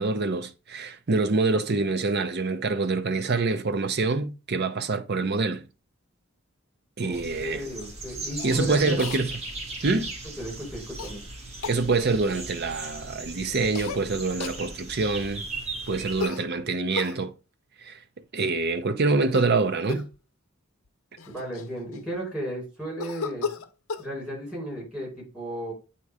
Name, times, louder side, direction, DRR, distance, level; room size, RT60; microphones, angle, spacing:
voice 1, 0.0-5.6 7.0-7.6 8.4-9.3 9.8-10.1 11.7-15.4 15.9-17.3 17.8-18.0 18.3-20.1, right 3 dB, 50° right, 0.7 m, -25 dB
voice 2, 7.0-9.0 10.4-11.2 21.3-23.5 24.0-25.7, right 1 dB, 5° right, 4.2 m, -34 dB
sound 1, 7.1-16.2, right 2 dB, 30° right, 1.7 m, -38 dB
Cough, 8.4-8.6 9.0-9.2 11.0-11.1 11.6-11.8 13.7-14.0 14.4-14.6 16.2-17.2 19.2-19.6 19.9-20.2 20.8-20.9 21.2-22.2 23.0-24.1, left 4 dB, 90° left, 0.7 m, -34 dB
8.4 x 3.0 x 4.7 m
head